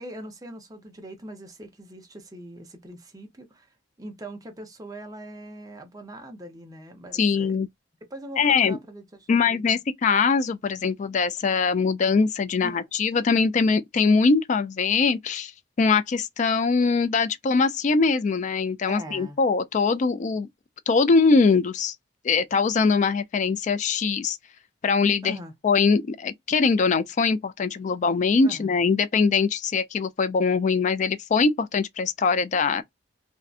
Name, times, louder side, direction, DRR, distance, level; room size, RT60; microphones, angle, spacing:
voice 1, 0.0-7.6 8.1-9.6 12.6-12.8 18.9-19.4 25.2-25.5 28.4-28.7, right 1 dB, 20° right, 0.7 m, -41 dB
voice 2, 7.1-7.7 8.4-8.8 9.3-15.5 15.8-20.5 20.9-21.9 22.2-24.4 24.8-25.4 25.6-32.8, left 4 dB, 40° left, 0.3 m, -22 dB
2.7 x 2.2 x 2.4 m
head